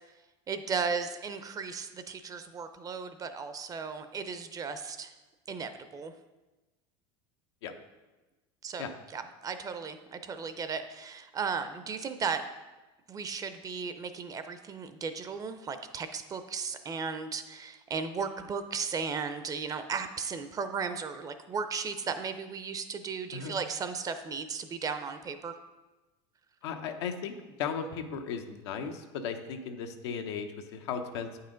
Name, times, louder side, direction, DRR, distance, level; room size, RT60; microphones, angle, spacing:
voice 1, 0.5-5.1 5.5-6.1 8.6-12.4 13.1-25.6, right 5 dB, 25° right, 9 dB, 0.5 m, -35 dB
voice 2, 26.6-31.3, left 6 dB, 85° left, 5 dB, 0.8 m, -36 dB
8.6 x 5.6 x 3.8 m, 1.1 s
supercardioid pair, 125°, 14 cm